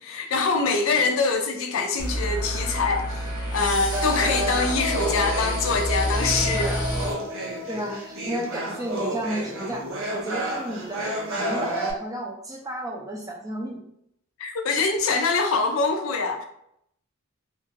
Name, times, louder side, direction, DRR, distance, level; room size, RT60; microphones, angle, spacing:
voice 1, 0.0-6.8 14.4-16.4, left 4 dB, 70° left, 4 dB, 0.4 m, -24 dB
sound 1, 2.0-7.1, equal, 20° left, 0.7 m, -28 dB
sound 2, 3.9-11.9, equal, 70° right, 0.6 m, -30 dB
voice 2, 7.7-9.9 10.1-13.8, right 1 dB, 15° right, 0 dB, 0.4 m, -32 dB
2.9 x 2.5 x 2.5 m, 0.74 s
head